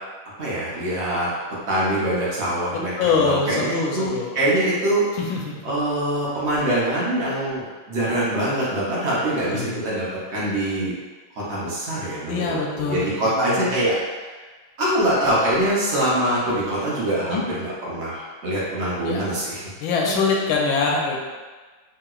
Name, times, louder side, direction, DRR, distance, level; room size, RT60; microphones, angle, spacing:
voice 1, 0.4-1.3 1.7-5.3 5.6-10.9 11.3-14.0 14.2-14.3 14.8-19.6 20.0-20.2, right 1 dB, 75° right, -8 dB, 0.6 m, -24 dB
voice 2, 2.7-4.4 5.2-5.6 9.5-9.8 12.3-13.7 17.2-17.4 19.1-19.2 19.8-21.2, left 4 dB, 80° left, -2 dB, 1.3 m, -24 dB
3.4 x 2.9 x 2.3 m, 1.4 s
omnidirectional pair, 2.3 m